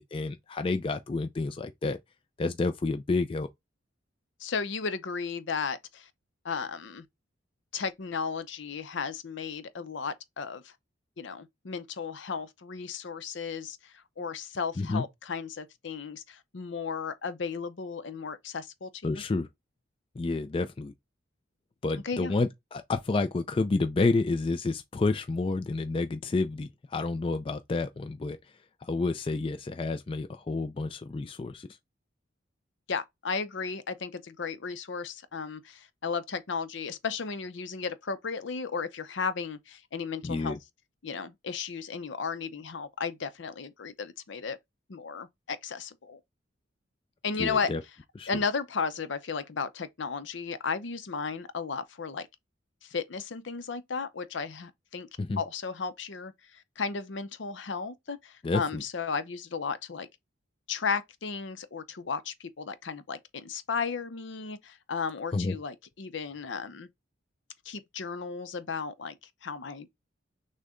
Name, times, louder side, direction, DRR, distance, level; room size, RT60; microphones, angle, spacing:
voice 1, 0.0-2.0 2.4-3.5 14.8-15.0 19.0-19.5 20.2-20.9 21.8-28.4 28.8-31.7 40.2-40.6 47.4-47.8 48.2-48.3 55.2-55.4 58.4-58.8 65.3-65.6, left 3 dB, 25° left, 0.3 m, -29 dB
voice 2, 4.4-6.1 6.4-7.0 7.7-10.7 11.2-19.2 22.0-22.3 32.9-40.6 41.0-44.6 44.9-46.2 47.2-47.7 48.3-52.3 52.8-55.1 55.4-60.1 60.7-66.9 67.7-69.1 69.4-69.9, left 5 dB, 70° left, 0.6 m, -34 dB
6.4 x 2.2 x 3.6 m
head